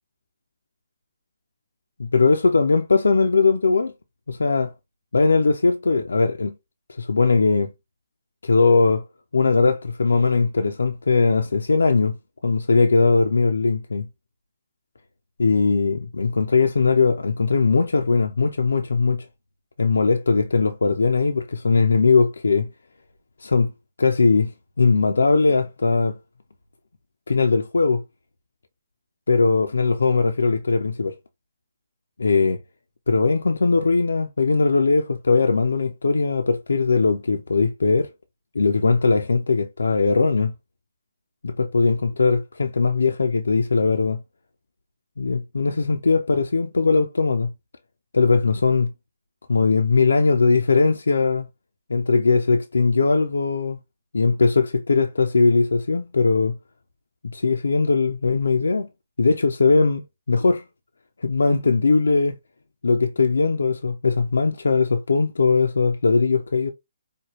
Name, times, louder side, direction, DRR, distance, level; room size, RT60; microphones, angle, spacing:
voice 1, 2.0-3.9 4.3-4.7 5.1-6.6 6.9-7.7 8.4-9.1 9.3-12.2 12.4-14.1 15.4-19.3 19.8-22.7 23.4-23.7 24.0-24.5 24.8-26.2 27.3-28.0 29.3-31.1 32.2-32.6 33.1-38.1 38.5-40.5 41.4-44.2 45.2-47.5 48.1-48.9 49.5-51.4 51.9-53.8 54.1-56.6 57.2-58.9 59.2-60.6 61.2-62.4 62.8-66.7, left 4 dB, 70° left, 0.5 m, -20 dB
5.0 x 2.2 x 3.0 m
figure-of-eight pair, 135°, 0 cm